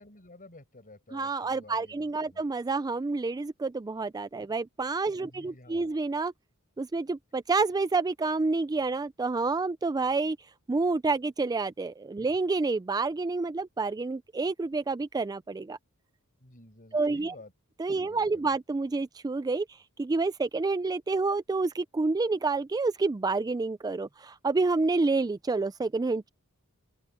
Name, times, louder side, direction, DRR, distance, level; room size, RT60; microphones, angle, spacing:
voice 1, 0.0-2.4 5.2-6.0 16.4-17.5 18.0-18.6, left 2 dB, 40° left, 7.2 m, -52 dB
voice 2, 1.1-6.3 6.8-10.4 10.7-15.8 16.9-17.3 17.8-19.6 20.0-26.3, right 3 dB, 15° right, 0.3 m, -28 dB
open air
head